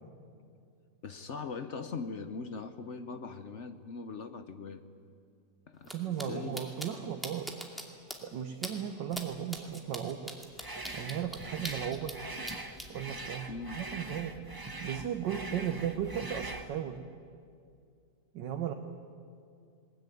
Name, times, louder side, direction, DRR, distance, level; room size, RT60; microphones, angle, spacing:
voice 1, 1.0-4.8 5.7-6.6 13.5-13.8, left 4 dB, 50° left, 10 dB, 1.0 m, -41 dB
sound 1, 5.8-5.9 6.2-6.3 6.5-6.9 7.2-7.8 8.1-8.2 8.6-8.7 9.1-9.2 9.5-12.2 12.4-12.9, equal, ahead, 2.3 m, -40 dB
voice 2, 5.9-7.5 8.2-10.3 10.9-12.1 12.9-17.0 18.3-18.7, right 9 dB, 85° right, 6 dB, 1.7 m, -36 dB
sound 2, 10.6-16.7, right 2 dB, 15° right, 0.9 m, -42 dB
20.5 x 20.5 x 9.3 m, 2.3 s
omnidirectional pair, 1.9 m